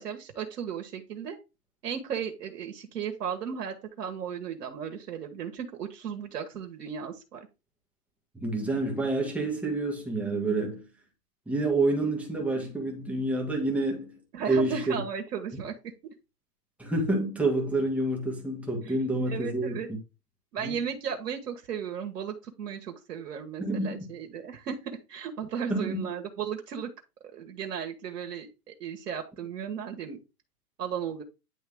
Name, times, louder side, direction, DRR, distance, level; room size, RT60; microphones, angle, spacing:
voice 1, 0.0-1.4 1.8-7.5 14.3-15.7 18.8-18.9 19.3-19.9 20.5-26.9 27.3-30.2 30.8-31.2, right 7 dB, 85° right, 1.4 m, -35 dB
voice 2, 8.4-10.8 11.5-14.2 14.5-15.0 16.8-20.0 20.6-20.8 23.6-24.0 25.7-26.1, right 2 dB, 5° right, 1.8 m, -28 dB
10.0 x 3.4 x 3.6 m
hypercardioid pair, 140°, 46 cm